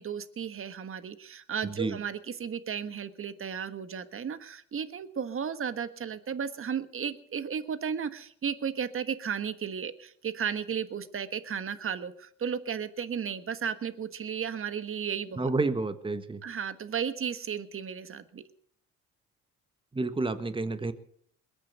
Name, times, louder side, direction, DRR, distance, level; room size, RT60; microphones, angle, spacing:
voice 1, 0.0-15.5 16.4-18.4, right 7 dB, 45° right, 12 dB, 1.5 m, -34 dB
voice 2, 1.6-2.0 15.4-16.4 19.9-20.9, right 3 dB, 15° right, 11 dB, 1.5 m, -30 dB
21.5 x 8.8 x 6.8 m, 0.63 s
cardioid pair, 80°, 31 cm